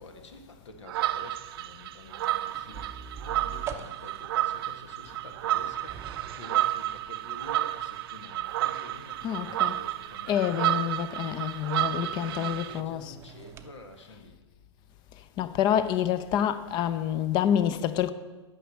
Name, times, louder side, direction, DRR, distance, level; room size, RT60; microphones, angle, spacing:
voice 1, 0.0-10.9 11.8-14.4, left 2 dB, 75° left, 1.6 m, -49 dB
sound 1, 0.9-12.8, right 14 dB, 55° right, 0.5 m, -31 dB
sound 2, 2.5-13.7, right 6 dB, 20° right, 0.7 m, -47 dB
voice 2, 9.2-9.7 10.3-13.1 15.4-18.1, left 10 dB, 30° left, 0.6 m, -27 dB
9.2 x 6.1 x 7.5 m
hypercardioid pair, 120°, 15 cm